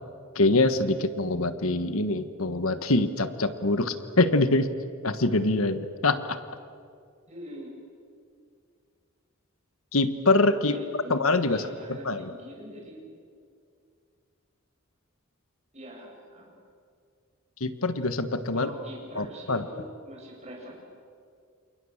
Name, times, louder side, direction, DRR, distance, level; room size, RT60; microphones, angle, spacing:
voice 1, 0.3-4.7 5.0-6.4 9.9-10.8 11.1-12.3 17.6-18.7 19.1-19.7, left 2 dB, 80° left, 11 dB, 1.4 m, -24 dB
voice 2, 7.3-7.8 10.6-11.2 11.5-13.1 15.7-16.5 18.5-20.7, equal, 35° right, -1 dB, 7.6 m, -44 dB
28.5 x 28.5 x 7.3 m, 2.3 s
head